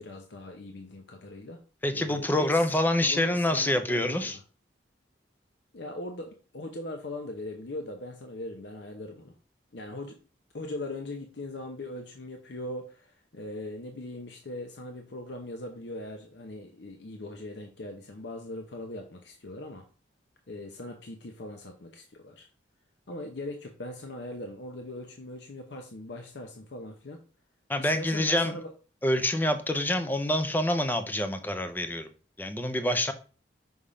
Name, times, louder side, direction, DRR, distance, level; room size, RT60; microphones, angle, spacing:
voice 1, 0.0-1.6 1.9-2.6 3.0-4.4 5.7-9.3 9.7-10.2 10.5-19.8 20.5-22.5 23.1-27.2 27.8-28.7, left 1 dB, 65° left, 3 dB, 0.7 m, -40 dB
voice 2, 1.8-4.4 27.7-28.5 29.0-32.1 32.4-33.1, left 1 dB, 10° left, 9 dB, 0.5 m, -26 dB
5.5 x 3.5 x 4.9 m, 0.38 s
head